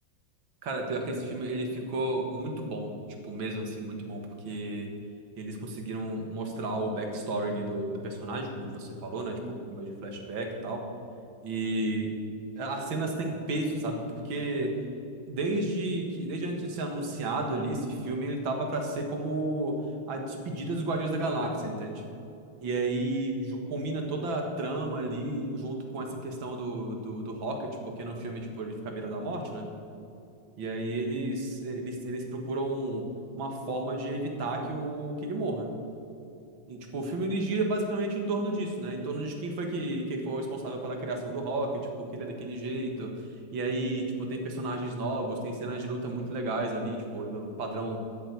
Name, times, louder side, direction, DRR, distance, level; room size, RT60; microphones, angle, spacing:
voice 1, 0.6-3.0 3.2-4.9 5.4-10.9 11.4-12.1 12.6-14.8 15.3-19.8 20.1-22.0 22.6-29.7 30.6-33.1 33.3-35.7 36.7-43.1 43.5-48.0, right 2 dB, 80° right, 3 dB, 2.4 m, -32 dB
13.0 x 7.4 x 8.1 m, 2.6 s
omnidirectional pair, 2.1 m